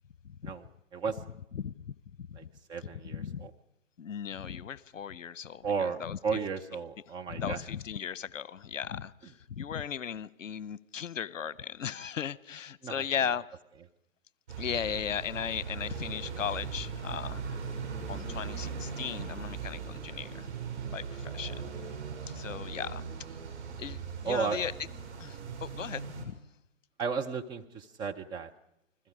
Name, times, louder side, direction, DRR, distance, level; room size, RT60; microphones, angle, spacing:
voice 1, 1.5-2.5 3.0-3.5 4.0-6.2 7.3-13.4 14.6-17.6 18.1-20.5 20.8-21.7 22.3-23.0 23.8-24.7 25.2-26.4, left 8 dB, 70° left, 20 dB, 1.0 m, -37 dB
voice 2, 2.7-3.5 5.6-7.6 12.8-13.0 24.2-24.6 27.0-28.5, right 5 dB, 10° right, 4 dB, 0.7 m, -34 dB
sound 1, 14.5-26.2, right 6 dB, 55° right, 6.5 m, -39 dB
29.5 x 21.5 x 5.0 m, 0.85 s
figure-of-eight pair, 130°, 39 cm